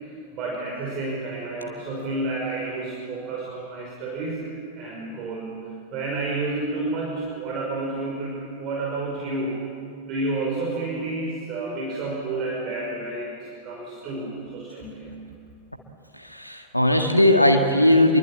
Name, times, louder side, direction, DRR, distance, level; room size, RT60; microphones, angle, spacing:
voice 1, 0.3-9.6 10.0-15.1, right 2 dB, 35° right, -2 dB, 5.7 m, -30 dB
voice 2, 16.1-18.2, left 1 dB, 90° left, 3 dB, 1.8 m, -18 dB
27.5 x 23.5 x 8.8 m, 2.4 s
figure-of-eight pair, 90°, 0 cm